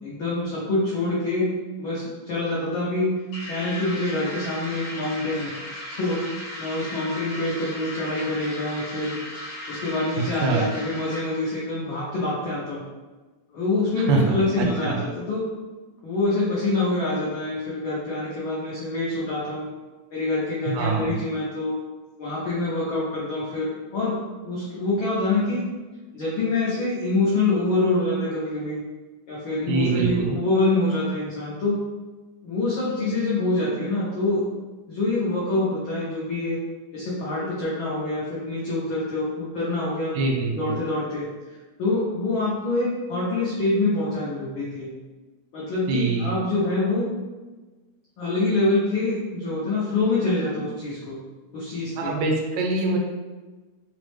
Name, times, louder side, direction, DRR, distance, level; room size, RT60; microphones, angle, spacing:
voice 1, 0.0-1.5 1.8-3.1 3.5-5.5 5.9-9.2 9.7-12.8 13.5-15.5 16.0-19.7 20.1-21.8 22.2-24.2 24.4-25.6 26.1-28.8 29.3-31.8 32.4-34.4 34.9-36.6 36.9-40.2 40.4-41.3 41.8-44.9 45.5-47.1 48.2-51.2 51.5-52.1, left 2 dB, 90° left, -7 dB, 1.1 m, -25 dB
sound 1, 3.3-11.6, left 1 dB, 65° left, 1.2 m, -37 dB
voice 2, 10.2-10.7 14.1-15.0 20.7-21.2 29.7-30.3 40.1-40.8 45.9-46.3 52.0-53.0, right 4 dB, 85° right, 1 dB, 2.0 m, -24 dB
5.7 x 2.1 x 3.1 m, 1.2 s
omnidirectional pair, 3.3 m